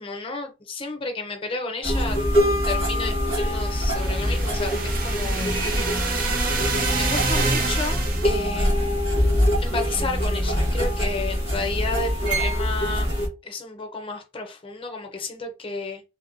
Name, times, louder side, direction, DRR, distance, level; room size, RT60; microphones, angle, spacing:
voice 1, 0.0-5.5 6.9-9.3 9.6-13.1 13.4-16.0, left 3 dB, 30° left, 0.6 m, -32 dB
sound 1, 1.8-13.3, equal, 80° right, 1.7 m, -24 dB
sound 2, 3.5-8.4, right 4 dB, 50° right, 0.6 m, -28 dB
3.5 x 2.2 x 2.5 m
head